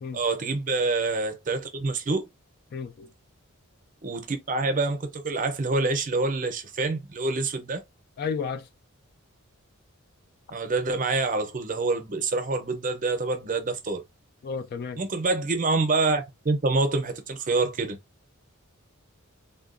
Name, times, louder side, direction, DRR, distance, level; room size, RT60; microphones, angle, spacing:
voice 1, 0.1-2.3 4.0-7.8 10.5-14.0 15.0-18.0, right 3 dB, 40° right, 0.6 m, -26 dB
voice 2, 2.7-3.1 8.2-8.7 14.4-15.0, left 5 dB, 45° left, 0.3 m, -32 dB
3.7 x 2.3 x 2.4 m
head